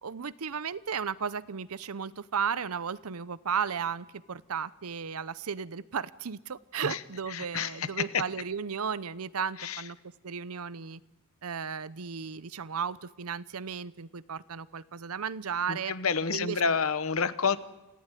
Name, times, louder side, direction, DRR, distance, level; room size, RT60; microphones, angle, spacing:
voice 1, 0.0-10.0 10.2-11.0 11.4-15.9 16.3-16.7, right 6 dB, 90° right, 18 dB, 0.7 m, -34 dB
voice 2, 7.3-8.2 9.6-9.8 15.7-17.6, left 5 dB, 70° left, 15 dB, 1.1 m, -29 dB
26.5 x 15.5 x 9.2 m, 1.1 s
head